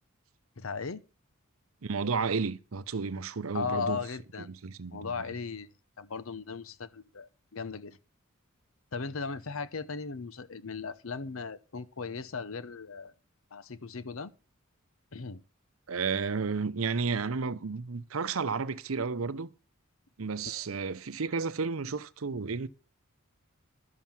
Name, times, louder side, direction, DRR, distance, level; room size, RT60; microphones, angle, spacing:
voice 1, 0.6-1.0 3.5-4.5 4.9-8.0 8.9-13.1 13.5-14.3 15.1-15.4 20.4-20.8, left 5 dB, 75° left, 0.8 m, -37 dB
voice 2, 1.8-4.0 4.5-5.2 15.9-19.5 20.2-22.7, right 5 dB, 80° right, 0.7 m, -32 dB
12.0 x 7.4 x 6.0 m
head